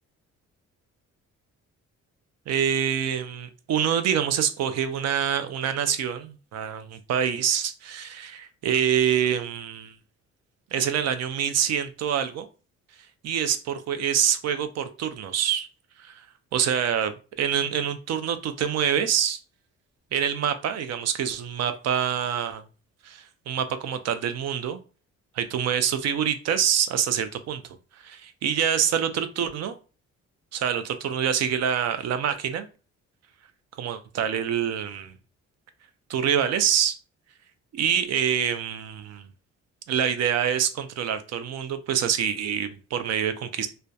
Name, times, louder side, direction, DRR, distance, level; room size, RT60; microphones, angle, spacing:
voice 1, 2.5-9.9 10.7-12.5 13.2-15.7 16.0-16.3 16.5-17.1 17.4-19.4 20.1-22.6 23.0-24.8 25.4-27.6 28.0-29.8 30.5-32.7 33.8-35.1 36.1-36.9 37.7-39.2 39.9-43.7, right 8 dB, 60° right, 0.4 m, -26 dB
2.6 x 2.1 x 2.3 m
cardioid pair, 90°, 30 cm